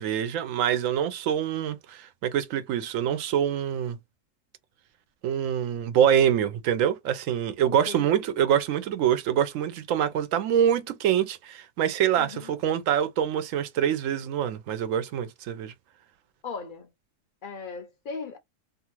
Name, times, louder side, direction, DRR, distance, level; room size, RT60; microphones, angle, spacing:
voice 1, 0.0-4.0 5.2-15.7, right 9 dB, 90° right, 1.0 m, -25 dB
voice 2, 7.7-8.4 12.2-12.6 16.4-16.9 17.4-18.4, left 5 dB, 60° left, 0.5 m, -38 dB
2.7 x 2.4 x 2.9 m
omnidirectional pair, 1.3 m